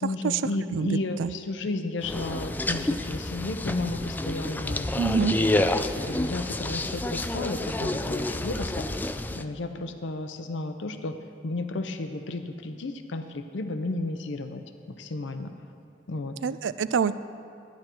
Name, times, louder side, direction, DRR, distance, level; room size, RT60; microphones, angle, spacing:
voice 1, 0.0-4.9 5.2-8.9 9.3-11.2 11.4-14.6 15.0-15.5 16.1-16.4, left 2 dB, 75° left, 8 dB, 0.6 m, -33 dB
voice 2, 0.7-1.3 5.0-5.4 16.4-17.1, right 6 dB, 80° right, 14 dB, 0.4 m, -26 dB
sound 1, 2.0-9.4, left 1 dB, 10° left, 0.3 m, -29 dB
13.0 x 10.5 x 4.4 m, 2.5 s
head